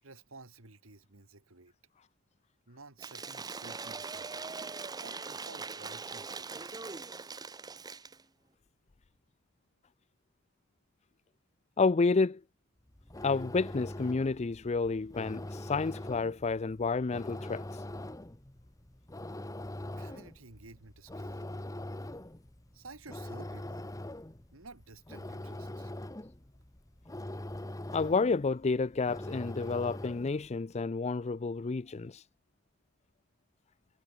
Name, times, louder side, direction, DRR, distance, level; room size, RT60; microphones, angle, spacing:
voice 1, 0.0-1.7 2.7-4.5 5.0-6.8 20.0-21.5 22.7-23.9 24.5-25.9, right 3 dB, 75° right, 2.4 m, -53 dB
Cheering / Applause / Crowd, 3.0-8.2, right 4 dB, 20° right, 0.7 m, -41 dB
voice 2, 11.8-12.4 13.2-17.6 27.9-32.1, left 4 dB, 30° left, 0.5 m, -30 dB
sound 1, 12.9-30.5, left 1 dB, 15° left, 1.2 m, -43 dB
head